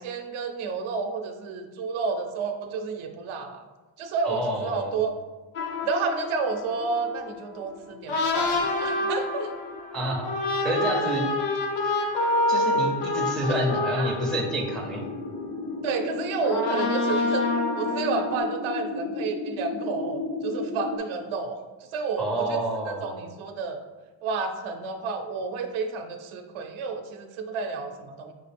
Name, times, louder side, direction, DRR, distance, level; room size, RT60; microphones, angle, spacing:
voice 1, 0.0-3.7 4.0-5.2 5.8-9.5 13.5-14.2 15.8-17.4 17.8-21.6 21.9-22.6 22.9-23.8 24.2-28.3, right 4 dB, 80° right, 6 dB, 0.6 m, -30 dB
voice 2, 4.2-5.0 9.9-10.3 10.6-11.3 11.8-12.0 12.5-15.0 22.2-23.2, right 1 dB, ahead, -2 dB, 0.4 m, -28 dB
sound 1, 5.5-15.9 16.4-18.4, left 2 dB, 90° left, 0.8 m, -28 dB
sound 2, 14.7-21.0, left 3 dB, 50° left, 0.6 m, -33 dB
5.5 x 2.4 x 3.3 m, 1.3 s
cardioid pair, 160°, 48 cm